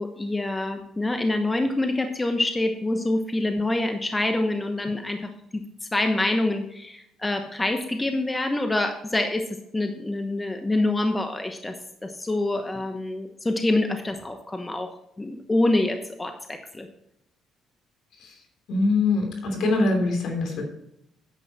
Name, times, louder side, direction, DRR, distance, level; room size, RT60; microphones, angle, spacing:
voice 1, 0.0-5.2 5.5-9.4 9.7-11.7 12.0-14.9 15.2-16.9, left 2 dB, 15° left, 6 dB, 1.1 m, -26 dB
voice 2, 18.1-20.6, left 3 dB, 70° left, 3 dB, 3.1 m, -24 dB
9.6 x 8.0 x 4.3 m, 0.78 s
supercardioid pair, 75°, 0 cm